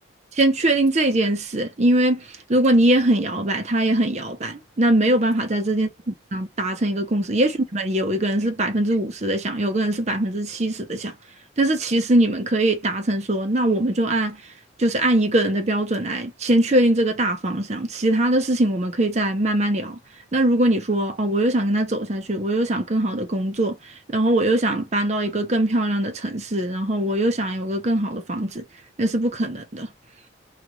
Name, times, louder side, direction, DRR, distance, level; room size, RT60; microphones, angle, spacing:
voice 1, 0.3-11.1 11.6-14.4 14.8-20.0 20.3-28.6 29.0-29.9, right 1 dB, 35° right, 0.6 m, -22 dB
3.0 x 2.5 x 3.7 m
head